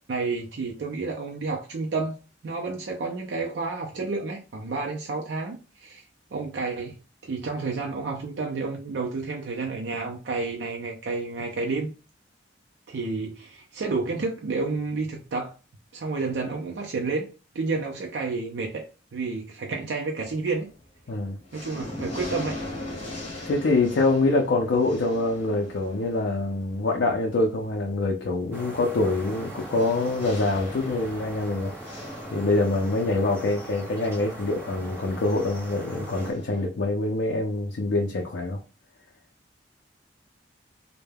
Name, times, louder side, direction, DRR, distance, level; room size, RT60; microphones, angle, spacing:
voice 1, 0.1-2.2 2.4-6.0 6.3-7.0 7.2-11.9 12.9-15.5 15.9-18.9 19.1-20.7 21.5-22.6, right 3 dB, 70° right, 0.4 m, -30 dB
sound 1, 20.3-20.8 21.2-36.6, left 1 dB, 35° left, 1.0 m, -41 dB
voice 2, 21.1-21.4 23.5-32.1 32.3-38.6, left 2 dB, 70° left, 0.4 m, -25 dB
sound 2, 28.5-36.3, right 1 dB, 15° right, 1.0 m, -40 dB
2.2 x 2.1 x 3.2 m
head